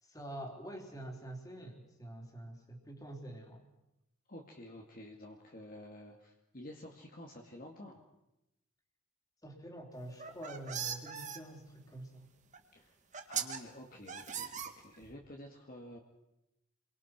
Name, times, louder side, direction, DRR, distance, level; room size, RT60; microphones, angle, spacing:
voice 1, 0.0-3.6 9.4-12.3, right 1 dB, 15° left, 2 dB, 3.7 m, -46 dB
voice 2, 4.3-8.0 12.7-13.0 13.3-16.0, left 1 dB, 40° left, 1 dB, 2.2 m, -50 dB
sound 1, 10.1-11.4 12.5-12.6 13.1-13.6 14.1-15.1, right 8 dB, 35° right, 1.9 m, -39 dB
29.0 x 23.0 x 6.1 m, 0.90 s
head